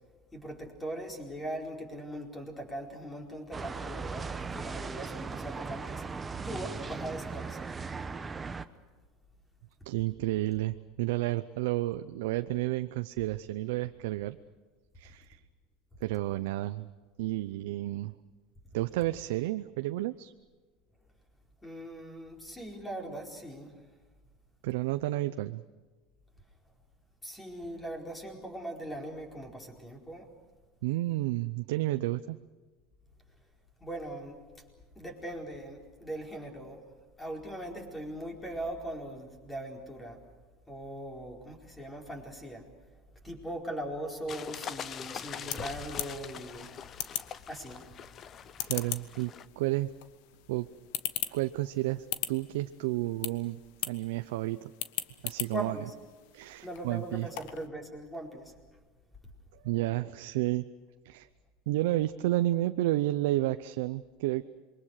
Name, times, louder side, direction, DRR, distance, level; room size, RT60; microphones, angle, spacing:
voice 1, 0.3-7.7 21.6-23.8 27.2-30.3 33.8-34.4 34.9-40.2 40.7-42.7 43.2-47.0 47.5-48.0 51.3-51.4 55.5-55.9 56.6-58.5, right 1 dB, 10° left, 2 dB, 4.6 m, -40 dB
sound 1, 3.5-8.7, right 4 dB, 15° right, 1.0 m, -38 dB
voice 2, 9.8-14.4 15.0-15.4 16.0-16.9 17.2-18.1 18.7-20.3 24.6-25.6 30.8-32.4 48.6-49.9 50.5-50.7 51.3-54.7 55.2-55.8 56.3-57.3 59.6-60.6 61.0-61.3 61.7-64.4, right 17 dB, 80° right, 10 dB, 0.7 m, -31 dB
sound 2, 44.3-49.5, left 8 dB, 35° left, 0.8 m, -43 dB
sound 3, 44.9-57.7, left 13 dB, 70° left, 1.4 m, -41 dB
27.5 x 23.0 x 6.6 m, 1.4 s
supercardioid pair, 135°, 0 cm